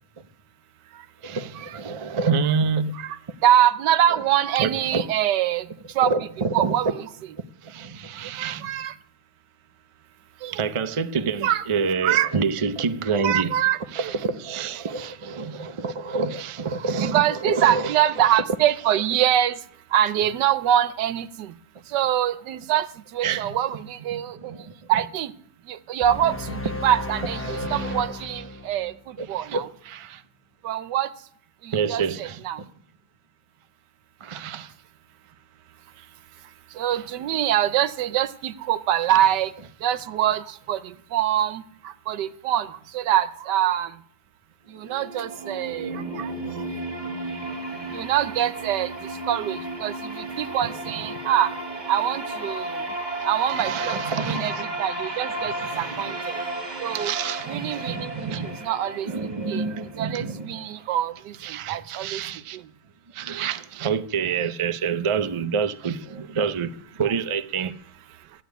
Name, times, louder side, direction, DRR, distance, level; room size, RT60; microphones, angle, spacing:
voice 1, 1.2-3.0 4.1-4.2 4.6-5.0 6.0-6.7 7.6-8.7 10.5-13.5 13.9-18.4 23.2-23.6 24.1-24.7 26.5-26.6 27.4-28.0 29.2-30.2 31.7-32.7 34.2-34.7 36.0-36.1 36.9-37.0 47.3-47.4 50.6-50.8 53.4-56.1 56.9-58.7 59.0-61.0 61.4-62.6 63.1-66.7 67.0-67.7, right 5 dB, 50° right, 0.3 m, -28 dB
voice 2, 2.9-5.7 5.9-6.1 6.5-7.1 8.4-8.9 10.4-10.6 11.4-11.6 12.0-12.3 13.2-14.1 17.0-19.6 19.9-21.5 21.9-22.9 23.1-24.5 24.9-25.3 25.7-28.9 29.3-29.7 30.6-31.1 31.6-32.6 36.8-39.5 39.8-41.6 42.1-42.7 42.9-43.9 44.7-46.3 47.9-48.9 49.2-51.5 51.9-52.8 53.2-54.0 54.2-56.3 56.8-57.1 57.5-59.1 59.5-59.6 60.0-62.2, right 11 dB, 85° right, 1.4 m, -24 dB
sound 1, 26.0-29.3, left 2 dB, 15° left, 0.5 m, -33 dB
sound 2, 44.7-60.7, right 2 dB, 25° right, 1.6 m, -34 dB
13.5 x 8.8 x 9.3 m
omnidirectional pair, 1.8 m